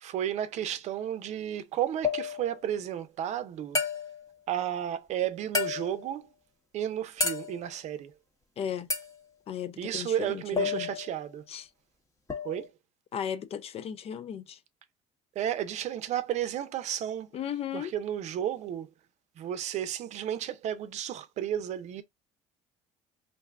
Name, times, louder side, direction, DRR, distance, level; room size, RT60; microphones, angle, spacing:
voice 1, 0.0-3.8 4.5-6.3 6.7-8.1 9.8-11.4 12.4-12.7 15.4-17.3 17.7-18.9 19.4-22.0, right 10 dB, 60° right, 0.6 m, -32 dB
sound 1, 2.0-2.6 3.8-4.3 5.5-6.1 7.2-7.7 8.9-9.2 10.6-11.3 12.3-12.7, left 4 dB, 25° left, 1.0 m, -31 dB
voice 2, 8.6-8.9 9.5-10.9 11.5-11.7 13.1-14.6 17.3-17.9, left 9 dB, 50° left, 0.5 m, -35 dB
2.6 x 2.3 x 3.3 m
supercardioid pair, 85°, 13 cm